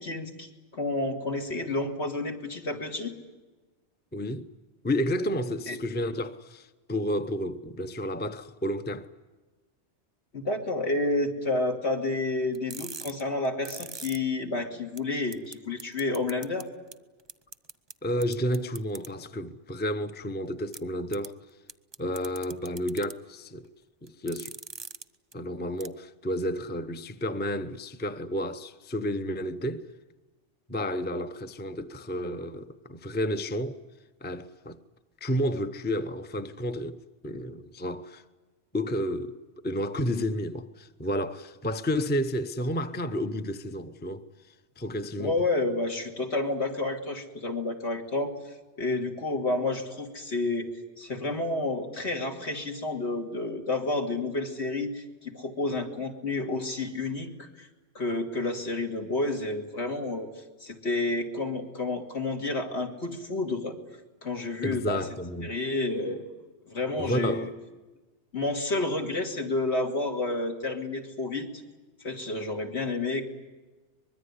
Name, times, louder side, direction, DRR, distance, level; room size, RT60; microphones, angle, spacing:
voice 1, 0.0-3.1 5.7-5.8 10.3-16.7 45.2-48.3 48.8-50.7 51.0-57.7 57.9-60.3 60.6-63.8 64.2-65.0 65.4-66.2 66.7-67.5 68.3-71.6 72.0-73.3, left 2 dB, 65° left, 2.9 m, -30 dB
voice 2, 4.1-4.5 4.8-9.1 18.0-21.4 22.0-23.7 24.0-24.6 25.3-29.9 30.7-33.8 34.2-34.8 35.2-37.0 37.2-38.2 38.7-39.4 39.6-44.2 44.8-45.3 64.6-65.5 67.0-67.5, equal, 10° left, 0.7 m, -31 dB
sound 1, 12.5-14.2 14.6-14.7 15.0-15.1 15.3-15.5 15.8-16.6 16.9-17.0 17.3-17.9 18.2-19.1 20.7-20.8 21.1-21.3 21.7-23.1 24.1-25.0 25.3-25.4 25.8-25.9, right 4 dB, 25° right, 0.8 m, -40 dB
24.5 x 21.5 x 9.7 m
omnidirectional pair, 1.2 m